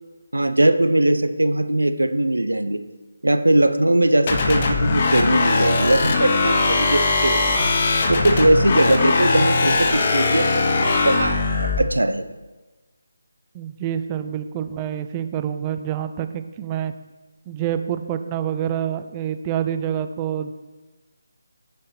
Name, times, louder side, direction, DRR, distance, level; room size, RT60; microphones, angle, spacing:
voice 1, 0.3-2.8 3.2-7.6 8.1-12.3, right 1 dB, 85° right, 10 dB, 0.5 m, -20 dB
sound 1, 4.3-11.8, left 3 dB, 35° left, 0.8 m, -20 dB
voice 2, 13.5-16.9 17.5-20.5, right 9 dB, 20° right, 10 dB, 0.3 m, -27 dB
6.3 x 5.2 x 4.2 m, 1.2 s
figure-of-eight pair, 155°, 0 cm